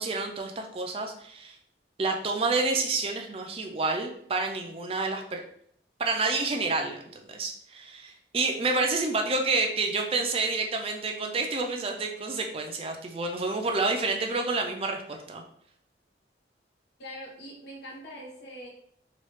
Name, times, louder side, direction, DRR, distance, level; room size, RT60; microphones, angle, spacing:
voice 1, 0.0-1.6 2.0-5.4 6.0-15.4, right 3 dB, 30° right, 3 dB, 0.4 m, -29 dB
voice 2, 17.0-18.7, equal, 65° left, -2 dB, 0.9 m, -42 dB
3.1 x 2.3 x 3.0 m, 0.68 s
head